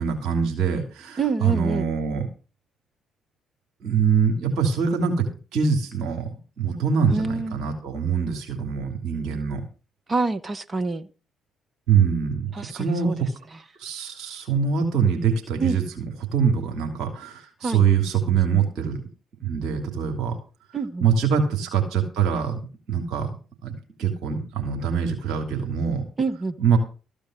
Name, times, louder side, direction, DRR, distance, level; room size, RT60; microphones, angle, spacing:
voice 1, 0.0-2.3 3.8-6.3 6.6-9.6 11.9-13.3 13.8-16.0 16.3-19.0 19.4-20.3 21.0-22.6 22.9-23.3 23.6-26.0 26.6-26.8, right 6 dB, 55° right, 2.9 m, -24 dB
voice 2, 1.2-1.9 7.1-7.7 10.1-11.1 12.5-13.3 15.6-15.8 17.6-17.8 20.7-21.1 26.2-26.6, right 3 dB, 30° right, 1.1 m, -27 dB
14.0 x 5.2 x 7.7 m
figure-of-eight pair, 45°, 0 cm